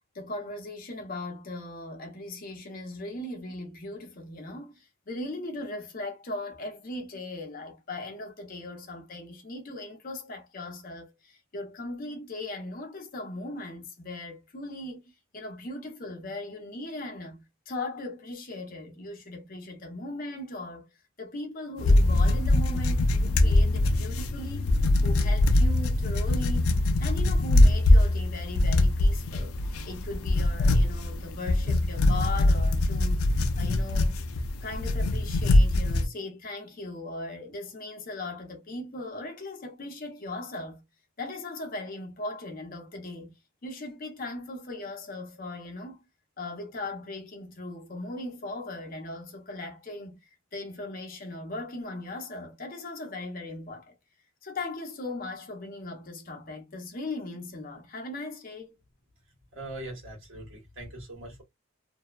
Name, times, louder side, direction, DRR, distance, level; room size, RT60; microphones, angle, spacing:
voice 1, 0.1-24.7 25.0-34.2 34.6-40.8 41.2-43.3 43.6-46.0 46.4-54.0 54.4-58.7, left 2 dB, 40° left, 0.7 m, -38 dB
sound 1, 21.8-36.1, left 1 dB, 80° left, 0.4 m, -23 dB
voice 2, 59.5-61.4, right 1 dB, 65° right, 1.3 m, -41 dB
2.7 x 2.2 x 2.2 m
head